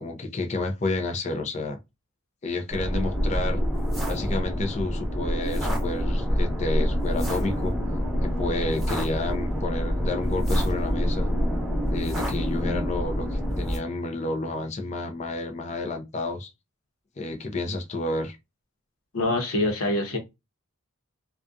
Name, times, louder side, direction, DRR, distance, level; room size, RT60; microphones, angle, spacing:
voice 1, 0.0-1.8 2.4-3.6 4.1-7.7 8.2-11.3 11.9-16.5 17.2-18.4, left 2 dB, 30° left, 0.4 m, -30 dB
sound 1, 2.7-13.8, equal, ahead, 0.9 m, -26 dB
voice 2, 19.1-20.2, left 1 dB, 85° left, 0.8 m, -25 dB
2.3 x 2.2 x 2.5 m
head